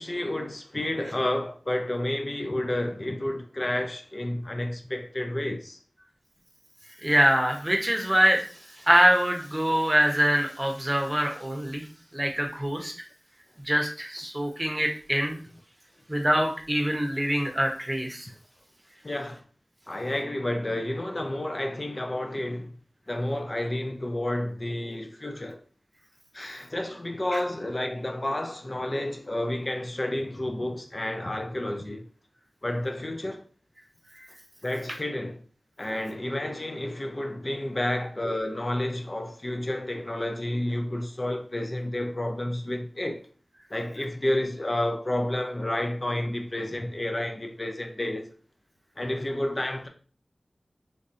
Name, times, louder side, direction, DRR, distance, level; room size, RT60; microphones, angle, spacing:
voice 1, 0.0-5.8 19.0-19.4 19.9-22.8 23.1-25.6 26.3-32.0 32.6-33.4 34.6-35.4 35.8-43.2 43.7-48.3 49.0-49.9, left 1 dB, 45° left, 0.5 m, -30 dB
voice 2, 7.0-8.4 8.9-11.8 12.1-12.9 13.7-15.4 16.1-18.3 27.3-27.4, equal, 25° right, 0.8 m, -24 dB
3.2 x 2.6 x 2.5 m
wide cardioid pair, 45°, 0 cm